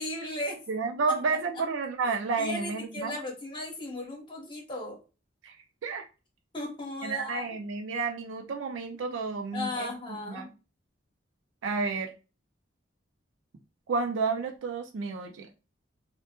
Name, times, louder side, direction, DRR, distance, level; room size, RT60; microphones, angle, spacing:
voice 1, 0.0-0.6 2.4-5.0 6.5-7.6 9.5-10.5, left 1 dB, 25° left, 0 dB, 1.0 m, -36 dB
voice 2, 0.7-3.2 5.4-5.5 5.8-6.1 7.0-9.9 10.3-10.5 11.6-12.1 13.9-15.5, right 4 dB, 70° right, 4 dB, 0.4 m, -31 dB
2.1 x 2.0 x 2.9 m, 0.31 s
head